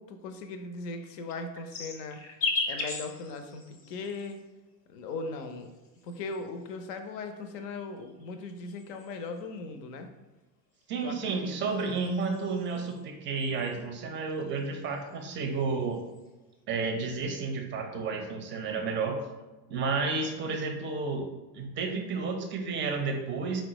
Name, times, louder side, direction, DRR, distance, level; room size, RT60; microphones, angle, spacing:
voice 1, 0.0-2.2 2.7-4.4 4.9-5.7 6.0-10.1 11.0-12.0, left 3 dB, 75° left, 7 dB, 0.6 m, -39 dB
sound 1, 1.0-4.4 5.4-6.7 7.6-9.4 10.8-13.0 13.4-13.9 14.2-15.3 15.6-16.2, left 3 dB, 30° left, 0.6 m, -38 dB
voice 2, 10.9-16.0 16.7-19.2 19.7-21.3 21.5-23.6, right 4 dB, 25° right, 4 dB, 0.4 m, -31 dB
4.1 x 2.1 x 2.9 m, 1.1 s
hypercardioid pair, 85°, 49 cm